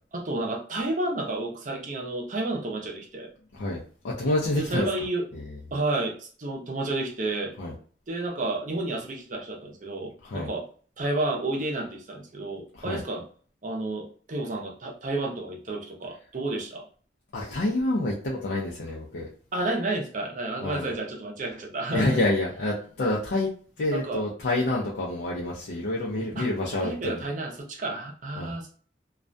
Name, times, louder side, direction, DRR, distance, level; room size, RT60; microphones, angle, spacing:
voice 1, 0.1-3.3 4.5-5.3 5.7-7.5 8.1-10.7 11.0-13.3 13.6-16.9 19.5-22.2 23.9-24.2 26.4-26.5 26.8-28.7, right 2 dB, 45° right, 1 dB, 0.5 m, -31 dB
voice 2, 4.0-4.9 5.3-5.5 7.6-7.7 10.2-10.5 12.7-13.0 17.3-19.3 20.6-20.9 21.9-23.5 23.8-27.2 28.4-28.5, left 2 dB, 90° left, -4 dB, 0.5 m, -28 dB
2.3 x 2.1 x 2.5 m, 0.43 s
head